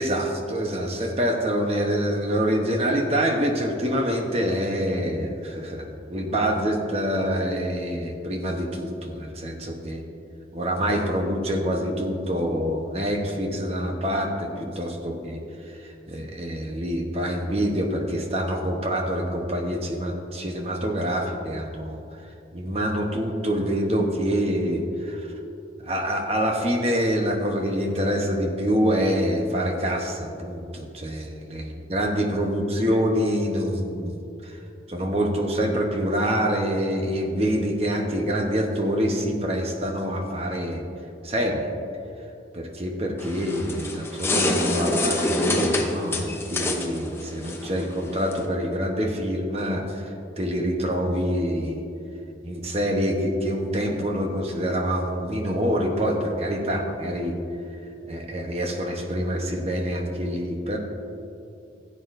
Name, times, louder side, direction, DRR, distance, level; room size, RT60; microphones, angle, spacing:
voice 1, 0.0-10.0 10.5-15.4 16.1-22.0 22.5-25.3 25.8-34.6 34.9-40.9 41.2-41.7 42.5-51.8 52.4-57.4 58.1-60.8, equal, 35° right, 2 dB, 0.9 m, -26 dB
sound 1, 43.2-48.5, left 2 dB, 15° left, 0.7 m, -27 dB
15.5 x 8.6 x 2.6 m, 2.7 s
head